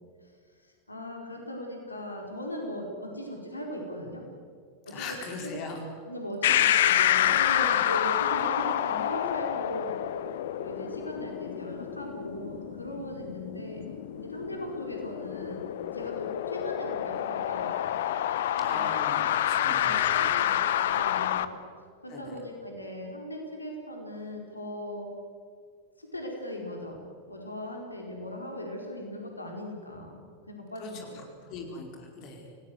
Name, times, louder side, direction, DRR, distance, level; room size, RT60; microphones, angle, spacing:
voice 1, 0.6-4.2 4.8-5.5 6.1-10.0 10.6-13.9 14.1-15.6 15.9-18.0 18.5-18.9 19.4-20.6 20.9-21.5 22.0-25.1 26.0-27.0 27.3-31.2, equal, 80° left, 1 dB, 4.7 m, -38 dB
voice 2, 4.9-5.8 18.6-20.1 22.1-22.4 30.8-31.0 31.4-32.5, left 4 dB, 40° left, 2 dB, 4.9 m, -40 dB
sound 1, 6.4-21.4, left 11 dB, 55° left, 1.1 m, -28 dB
28.0 x 19.0 x 8.1 m, 2.2 s
figure-of-eight pair, 90°, 0 cm